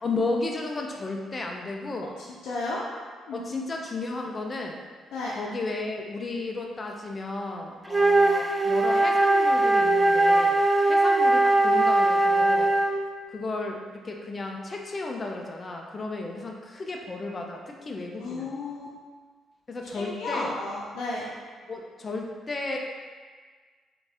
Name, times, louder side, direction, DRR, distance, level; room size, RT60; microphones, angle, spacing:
voice 1, 0.0-2.1 3.3-4.8 5.4-10.6 10.9-12.7 13.3-18.5 19.7-20.5 21.7-22.8, left 2 dB, 30° left, 1 dB, 0.6 m, -33 dB
voice 2, 2.4-2.8 3.3-3.7 5.1-5.3 18.2-18.9 19.8-21.2, left 2 dB, 85° left, -7 dB, 0.6 m, -33 dB
Wind instrument woodwind instrument, 7.9-13.1, right 2 dB, 15° right, 0.4 m, -20 dB
3.9 x 3.7 x 3.5 m, 1.5 s
cardioid pair, 90°, 0 cm